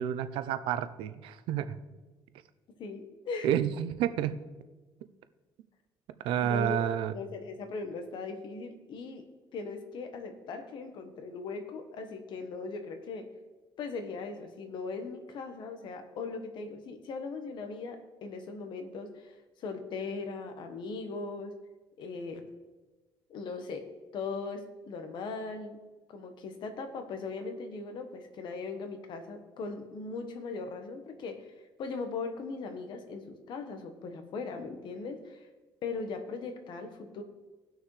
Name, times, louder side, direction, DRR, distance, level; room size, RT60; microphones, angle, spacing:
voice 1, 0.0-1.8 3.4-4.3 6.2-7.1, right 10 dB, 90° right, 12 dB, 0.6 m, -30 dB
voice 2, 2.8-3.5 6.4-6.9 7.1-9.3 9.5-13.3 13.8-21.5 22.0-22.4 23.3-23.9 24.1-25.8 26.1-31.5 31.8-35.5 35.8-37.2, left 4 dB, 65° left, 7 dB, 1.3 m, -39 dB
18.5 x 6.2 x 3.3 m, 1.2 s
cardioid pair, 115°, 9 cm